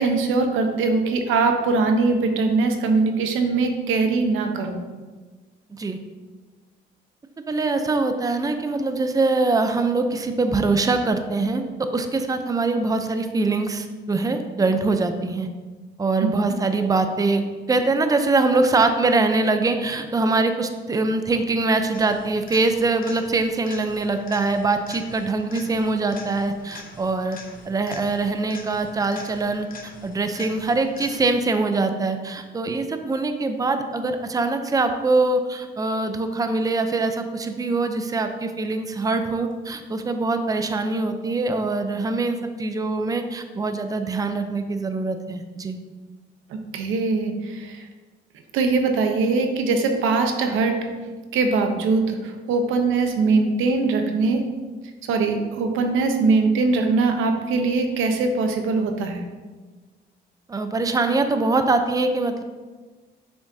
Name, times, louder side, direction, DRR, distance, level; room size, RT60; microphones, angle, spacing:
voice 1, 0.0-4.8 16.2-16.6 46.7-47.8 48.5-50.8 51.3-54.4 55.1-59.2, right 3 dB, 90° right, 5 dB, 0.8 m, -21 dB
voice 2, 7.5-15.5 16.0-17.4 17.7-27.4 27.7-45.8 60.5-62.4, right 3 dB, 20° right, 7 dB, 0.5 m, -23 dB
sound 1, 21.9-31.5 39.5-39.6, left 4 dB, 45° left, 1.0 m, -44 dB
7.1 x 6.1 x 2.7 m, 1.3 s
cardioid pair, 90°, 20 cm